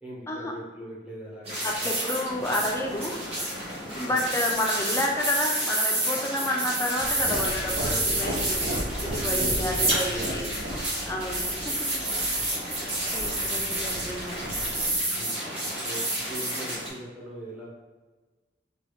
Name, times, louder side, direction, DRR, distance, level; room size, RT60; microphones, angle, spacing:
voice 1, 0.0-1.9 4.0-4.1 8.1-8.3 9.3-9.8 10.1-10.6 12.4-12.5 13.4-13.7 15.1-17.7, right 1 dB, 5° right, -6 dB, 0.7 m, -40 dB
sound 1, 1.5-16.9, right 1 dB, 35° right, 1.0 m, -29 dB
voice 2, 1.6-3.2 3.9-10.5 11.1-11.7 12.4-12.5 13.1-14.6, left 1 dB, 15° left, 0 dB, 0.4 m, -30 dB
sound 2, 7.0-15.0, equal, 65° right, 0.6 m, -36 dB
3.2 x 2.3 x 3.1 m, 1.3 s
head